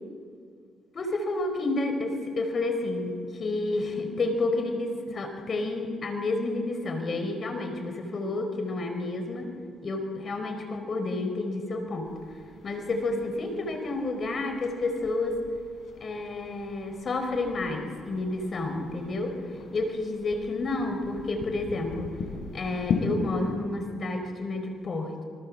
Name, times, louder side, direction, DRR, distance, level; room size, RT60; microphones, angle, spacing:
voice 1, 0.9-9.5 9.8-12.1 12.6-15.4 16.0-19.3 19.7-22.1 22.5-25.2, left 2 dB, 45° left, 6 dB, 4.8 m, -30 dB
sound 1, 12.0-23.6, left 4 dB, 65° left, 7.0 m, -38 dB
28.5 x 25.5 x 7.6 m, 2.1 s
cardioid pair, 90°, 0 cm